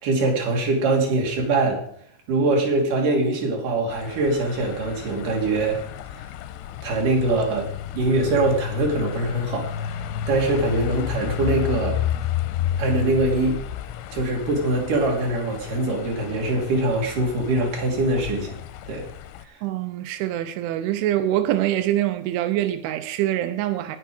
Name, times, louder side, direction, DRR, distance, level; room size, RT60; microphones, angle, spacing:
voice 1, 0.0-1.8 2.3-5.8 6.8-7.7 7.9-9.7 10.3-12.0 12.8-13.6 14.1-18.6 18.9-19.1, right 2 dB, 50° right, 3.9 m, -23 dB
sound 1, 3.9-19.4, left 10 dB, 85° left, 2.9 m, -31 dB
voice 2, 19.6-24.0, right 13 dB, 90° right, 3.2 m, -24 dB
19.0 x 6.6 x 5.1 m
omnidirectional pair, 5.3 m